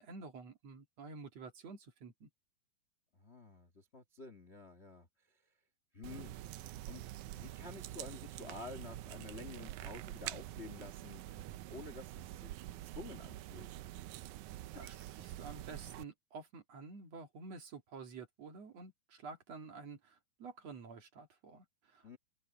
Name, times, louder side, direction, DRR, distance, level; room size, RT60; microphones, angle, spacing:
voice 1, 0.0-2.3 14.7-22.2, right 4 dB, 50° right, 2.9 m, -50 dB
voice 2, 3.2-5.1 5.9-6.3 6.8-7.0 7.3-13.7 14.7-15.1 22.0-22.2, left 3 dB, 50° left, 0.7 m, -50 dB
sound 1, 6.0-16.0, right 14 dB, 80° right, 1.8 m, -46 dB
open air
omnidirectional pair, 4.2 m